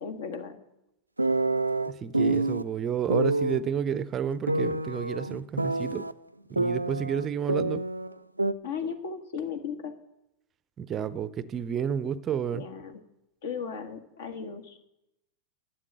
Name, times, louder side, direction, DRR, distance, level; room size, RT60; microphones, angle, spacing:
voice 1, 0.0-0.6 8.6-9.9 11.8-11.9 12.5-13.0 13.4-14.8, left 6 dB, 60° left, 8 dB, 1.4 m, -36 dB
sound 1, 1.2-2.6 3.1-3.6 4.5-6.1 6.6-8.1 8.4-8.5, right 2 dB, 85° right, 0.4 m, -27 dB
voice 2, 1.9-6.0 6.5-7.8 10.8-12.6, right 8 dB, 25° right, 16 dB, 0.5 m, -31 dB
12.0 x 7.6 x 6.8 m, 0.89 s
figure-of-eight pair, 90°, 0 cm